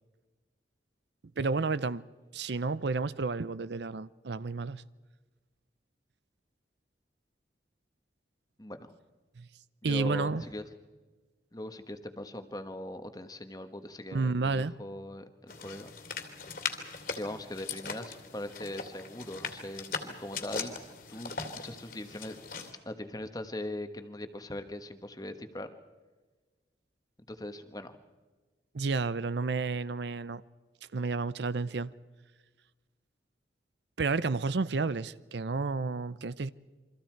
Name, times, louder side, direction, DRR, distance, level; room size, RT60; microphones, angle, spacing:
voice 1, 1.4-2.0 2.3-4.8 9.4-9.5 9.8-10.4 14.1-14.7 28.7-30.4 30.9-31.9 34.0-36.5, right 4 dB, 70° right, 0.6 m, -31 dB
voice 2, 9.8-10.7 11.5-15.9 17.1-20.8 21.1-22.4 22.8-25.7 27.3-28.0, left 1 dB, 20° left, 1.3 m, -40 dB
sound 1, 15.5-22.7, left 5 dB, 50° left, 2.6 m, -40 dB
28.5 x 24.0 x 4.6 m
head